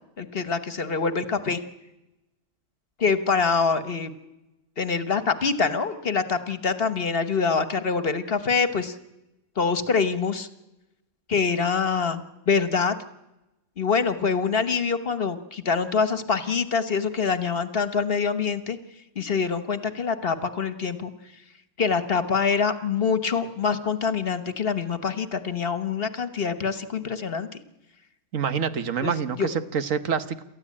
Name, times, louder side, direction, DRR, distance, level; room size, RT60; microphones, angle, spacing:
voice 1, 0.2-1.6 3.0-4.1 4.8-8.9 9.6-10.5 11.3-13.0 13.8-18.8 19.1-21.1 21.8-27.5 29.0-29.5, left 5 dB, 50° left, 11 dB, 1.4 m, -25 dB
voice 2, 28.3-30.4, right 7 dB, 80° right, 11 dB, 1.5 m, -27 dB
28.5 x 14.0 x 8.6 m, 0.96 s
omnidirectional pair, 1.3 m